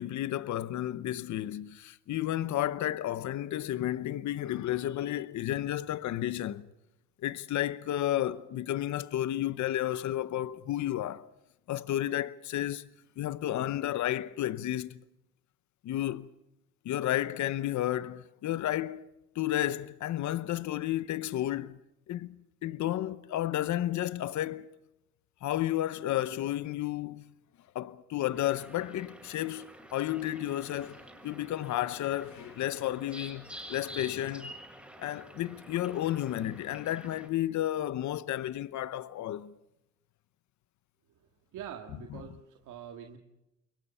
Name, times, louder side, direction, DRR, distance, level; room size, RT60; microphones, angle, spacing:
voice 1, 0.0-6.7 7.2-11.3 11.7-12.9 13.2-15.0 15.8-16.3 16.8-19.1 19.3-21.8 22.1-24.7 25.4-27.3 27.7-34.5 35.0-39.5, left 13 dB, 70° left, 0.9 m, -32 dB
sound 1, 28.3-37.3, right 1 dB, 5° right, 6.5 m, -49 dB
voice 2, 41.5-43.2, right 9 dB, 85° right, 2.0 m, -44 dB
28.5 x 22.5 x 5.6 m
cardioid pair, 90°, 30 cm